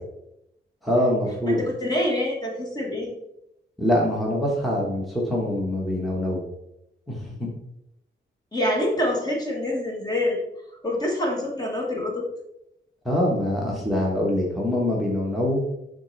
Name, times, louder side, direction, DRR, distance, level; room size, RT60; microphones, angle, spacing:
voice 1, 0.8-1.6 3.8-6.4 7.1-7.5 13.0-15.6, left 1 dB, ahead, -4 dB, 1.3 m, -24 dB
voice 2, 1.5-3.1 8.5-10.4 10.8-12.3, left 1 dB, 20° left, -1 dB, 1.4 m, -26 dB
11.0 x 3.8 x 3.2 m, 0.82 s
wide cardioid pair, 160°, 20 cm